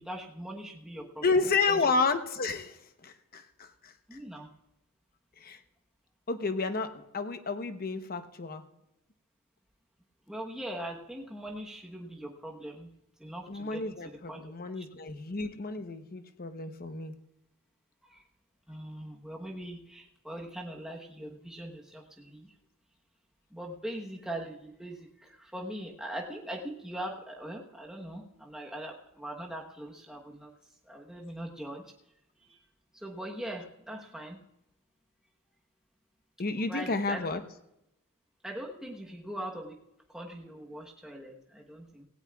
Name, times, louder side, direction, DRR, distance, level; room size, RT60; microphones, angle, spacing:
voice 1, 0.0-1.2 1.7-1.9 4.1-4.5 10.3-12.9 13.2-13.9 14.1-14.4 14.8-14.9 18.0-18.2 18.7-22.5 23.5-30.5 30.8-31.8 32.4-32.6 32.9-34.4 36.7-37.3 38.4-39.8 40.1-42.1, right 1 dB, 5° right, -1 dB, 1.1 m, -41 dB
voice 2, 1.2-4.2 5.4-5.6 6.3-8.6 13.5-17.2 36.4-37.4, left 4 dB, 45° left, 8 dB, 0.9 m, -31 dB
17.0 x 17.0 x 2.3 m, 0.85 s
head